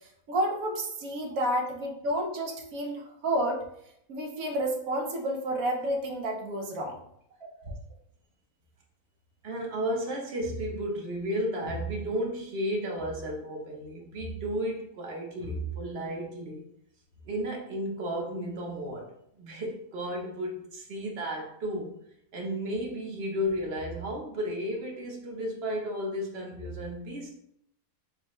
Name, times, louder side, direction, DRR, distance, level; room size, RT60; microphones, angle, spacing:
voice 1, 0.3-3.6 4.1-7.0, right 1 dB, 75° right, 1 dB, 1.2 m, -30 dB
voice 2, 7.4-7.7 9.4-16.6 17.3-19.1 19.4-21.9 22.3-27.3, equal, 50° right, -1 dB, 1.1 m, -33 dB
6.4 x 2.2 x 3.0 m, 0.74 s
omnidirectional pair, 1.5 m